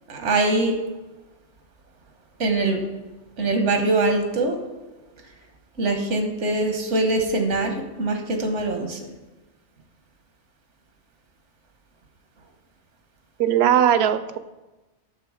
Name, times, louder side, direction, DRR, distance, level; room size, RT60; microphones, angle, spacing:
voice 1, 0.1-0.7 2.4-2.8 3.4-4.6 5.8-9.0, right 2 dB, 85° right, 5 dB, 1.5 m, -23 dB
voice 2, 13.4-14.4, right 10 dB, 70° right, 13 dB, 0.8 m, -19 dB
9.0 x 6.9 x 4.9 m, 1.1 s
omnidirectional pair, 1.2 m